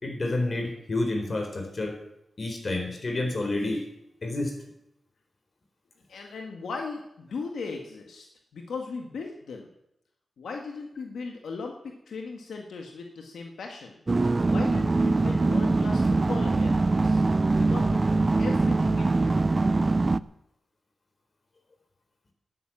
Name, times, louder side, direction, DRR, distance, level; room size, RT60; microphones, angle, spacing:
voice 1, 0.0-2.0 2.4-3.9 4.2-4.5, left 2 dB, 50° left, 5 dB, 4.4 m, -29 dB
voice 2, 6.1-8.3 8.5-9.7 10.4-14.0 14.5-17.2 17.6-19.4, left 4 dB, 90° left, 2 dB, 1.7 m, -38 dB
sound 1, 14.1-20.2, right 3 dB, 40° right, 0.6 m, -23 dB
12.5 x 10.5 x 8.8 m, 0.81 s
cardioid pair, 60°, 0 cm